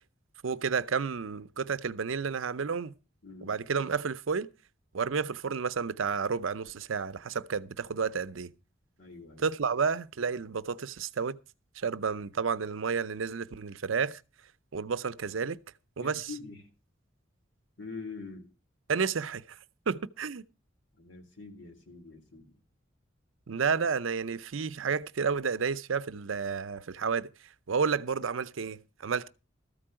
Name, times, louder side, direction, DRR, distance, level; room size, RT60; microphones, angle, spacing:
voice 1, 0.4-2.9 3.4-4.5 4.9-8.5 9.4-11.4 11.8-14.2 14.7-15.6 16.0-16.3 18.9-19.4 19.9-20.4 23.5-27.3 27.7-29.3, right 5 dB, 85° right, 0.6 m, -31 dB
voice 2, 3.2-3.6 9.0-9.5 16.0-16.7 17.8-18.5 21.0-22.6, left 4 dB, 65° left, 3.2 m, -44 dB
14.0 x 4.6 x 8.8 m
head